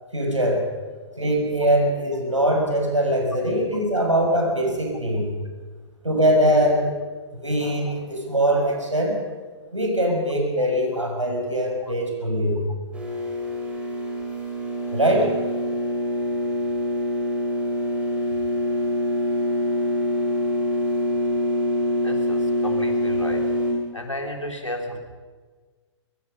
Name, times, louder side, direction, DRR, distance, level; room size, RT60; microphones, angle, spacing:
voice 1, 0.1-0.6 1.1-5.3 6.0-6.9 7.3-9.2 9.7-12.6 14.9-15.4, equal, 85° right, 1 dB, 6.5 m, -22 dB
sound 1, 12.9-23.7, left 1 dB, 10° right, 5.2 m, -25 dB
voice 2, 22.0-23.5 23.9-25.0, left 1 dB, 85° left, 3 dB, 3.6 m, -33 dB
23.0 x 23.0 x 5.5 m, 1.4 s
figure-of-eight pair, 115°, 16 cm